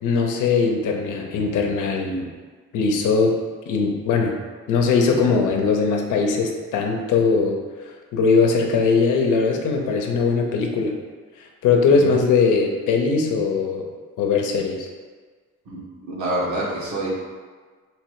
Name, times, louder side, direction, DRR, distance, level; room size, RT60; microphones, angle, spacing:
voice 1, 0.0-2.3 2.7-3.4 3.7-4.3 4.7-7.6 8.1-11.0 11.6-13.9 14.2-14.9, left 4 dB, 85° left, 2 dB, 0.8 m, -20 dB
voice 2, 11.9-12.2 15.6-17.1, right 1 dB, 70° right, -5 dB, 1.5 m, -27 dB
3.2 x 3.2 x 4.7 m, 1.5 s
cardioid pair, 90°, 30 cm